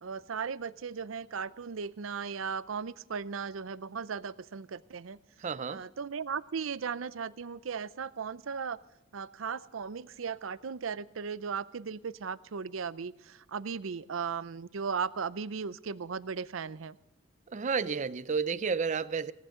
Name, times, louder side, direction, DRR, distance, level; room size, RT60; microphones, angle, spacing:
voice 1, 0.0-5.2 5.7-8.8 9.1-17.0, right 6 dB, 85° right, 0.6 m, -37 dB
voice 2, 5.4-5.8 17.5-19.3, right 5 dB, 40° right, 0.5 m, -31 dB
19.0 x 17.0 x 3.8 m
head